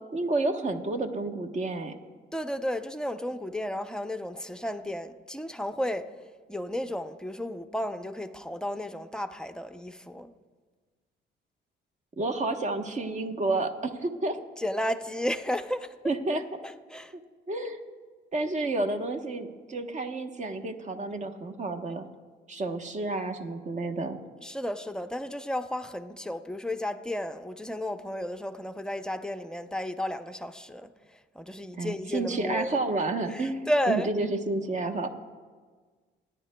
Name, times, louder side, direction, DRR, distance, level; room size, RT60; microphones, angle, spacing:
voice 1, 0.1-2.0 12.2-14.4 16.0-16.4 17.1-17.2 17.5-17.8 18.3-22.1 22.5-24.2 31.8-35.1, right 2 dB, 35° right, 1.0 m, -30 dB
voice 2, 2.3-6.1 6.5-10.3 14.6-15.9 16.6-17.1 24.4-30.9 31.4-32.8 33.3-34.1, left 1 dB, 5° left, 0.6 m, -33 dB
28.0 x 10.0 x 2.2 m
cardioid pair, 90°, 20 cm